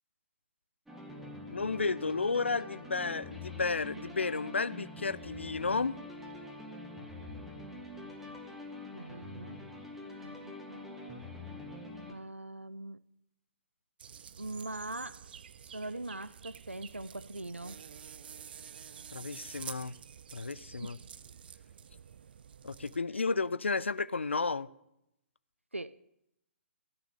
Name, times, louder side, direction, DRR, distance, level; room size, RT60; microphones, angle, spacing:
sound 1, 0.9-12.1, left 2 dB, 5° right, 1.6 m, -45 dB
voice 1, 1.5-6.0 19.1-19.9 20.3-21.0 22.6-24.7, left 4 dB, 75° left, 0.5 m, -32 dB
voice 2, 8.9-9.6 10.2-11.3 12.1-13.0 14.4-15.2 15.6-17.8 20.8-20.9 25.7-26.0, right 2 dB, 90° right, 0.4 m, -42 dB
sound 2, 14.0-23.0, right 7 dB, 50° right, 0.7 m, -49 dB
13.5 x 6.0 x 9.6 m
figure-of-eight pair, 125°, 7 cm